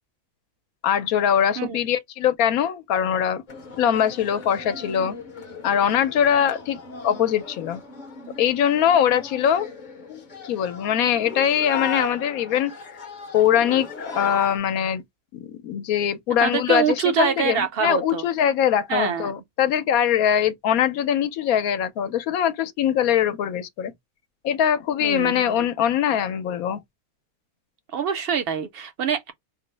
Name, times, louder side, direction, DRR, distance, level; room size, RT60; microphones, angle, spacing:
voice 1, 0.8-3.4 3.8-5.1 5.6-7.8 8.4-9.7 10.1-12.7 13.3-15.0 15.3-23.9 24.4-26.8, left 9 dB, 80° left, 1.0 m, -22 dB
sound 1, 3.5-14.6, left 4 dB, 45° left, 0.7 m, -37 dB
voice 2, 16.4-18.3 18.9-19.4 25.0-25.6 27.9-29.3, right 7 dB, 60° right, 0.6 m, -25 dB
3.5 x 2.0 x 3.1 m
omnidirectional pair, 1.5 m